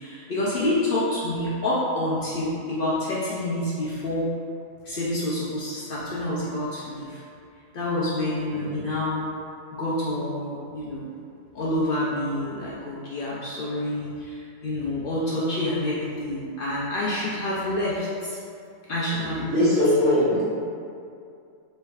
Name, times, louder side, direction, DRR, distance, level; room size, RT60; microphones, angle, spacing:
voice 1, 0.0-4.3 4.8-7.2 7.7-9.3 9.7-11.1 11.5-18.4 18.9-19.7, left 1 dB, 60° left, -7 dB, 0.6 m, -27 dB
voice 2, 19.1-20.4, left 1 dB, 85° right, -12 dB, 2.0 m, -22 dB
4.5 x 3.1 x 2.3 m, 2.4 s
omnidirectional pair, 1.4 m